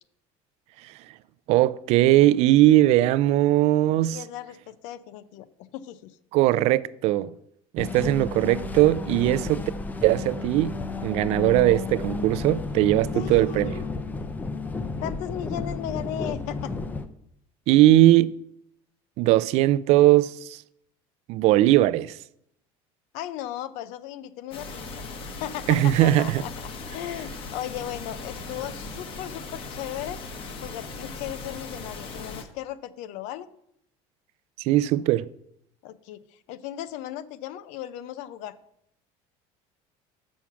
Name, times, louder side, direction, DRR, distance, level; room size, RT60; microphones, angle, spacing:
voice 1, 1.5-4.2 6.3-7.3 7.7-9.6 10.0-10.7 11.0-13.8 17.7-18.3 19.2-20.6 21.3-22.2 25.7-26.4 34.6-35.3, right 15 dB, 55° right, 0.4 m, -20 dB
voice 2, 4.1-6.2 8.0-8.5 13.1-14.1 15.0-16.7 23.1-25.0 25.4-30.2 30.6-33.5 35.8-38.6, left 12 dB, 70° left, 0.6 m, -36 dB
sound 1, 7.8-17.1, left 3 dB, 15° left, 0.5 m, -32 dB
sound 2, 24.5-32.4, left 3 dB, 45° left, 1.1 m, -38 dB
7.0 x 6.3 x 5.8 m
cardioid pair, 150°, 13 cm